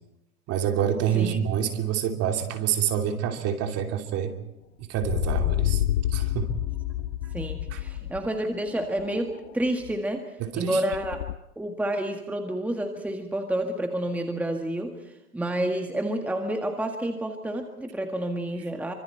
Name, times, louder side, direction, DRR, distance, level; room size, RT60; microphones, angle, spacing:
voice 1, 0.5-4.3 4.8-5.8 6.1-6.5 7.2-7.3 7.7-7.8 10.4-10.8, right 9 dB, 35° right, 4 dB, 3.0 m, -27 dB
sound 1, 5.0-8.3 8.7-9.5 9.8-9.9 10.9-11.4, left 14 dB, 45° left, 0.7 m, -28 dB
voice 2, 7.3-10.2 10.5-11.2 11.6-14.9 15.3-18.9, right 1 dB, 5° right, 4 dB, 1.7 m, -29 dB
28.0 x 25.5 x 4.5 m, 0.89 s
hypercardioid pair, 110°, 44 cm